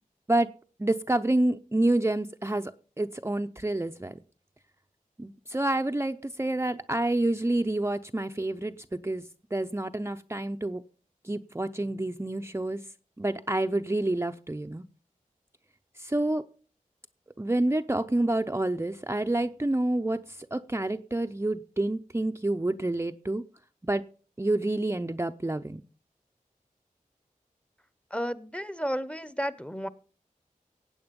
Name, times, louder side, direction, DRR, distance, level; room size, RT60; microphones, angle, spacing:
voice 1, 0.8-4.2 5.2-9.2 9.5-10.8 11.2-12.8 13.2-14.8 16.0-16.4 17.4-23.4 23.8-24.0 24.4-25.8, right 1 dB, 20° right, 7 dB, 0.6 m, -28 dB
voice 2, 28.1-29.9, equal, 10° left, 15 dB, 0.9 m, -32 dB
16.0 x 8.8 x 5.3 m, 0.40 s
wide cardioid pair, 60°, 14 cm